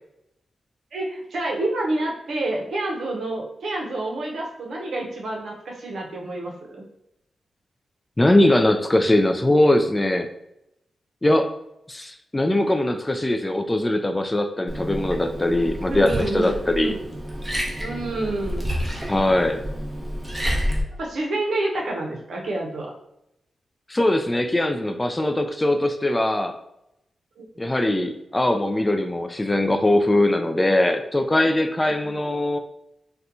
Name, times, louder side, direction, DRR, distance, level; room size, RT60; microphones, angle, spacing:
voice 1, 0.9-6.8 15.8-17.0 17.8-18.7 21.0-22.9 27.4-27.5 31.8-32.2, right 2 dB, 80° right, -1 dB, 0.7 m, -28 dB
voice 2, 8.2-10.3 11.2-11.5 11.9-16.9 19.1-19.6 23.9-26.6 27.6-32.6, left 1 dB, 20° left, 7 dB, 0.3 m, -21 dB
Liquid, 14.7-20.8, equal, 15° right, 0.9 m, -29 dB
4.1 x 2.2 x 2.6 m, 0.82 s
cardioid pair, 75°, 0 cm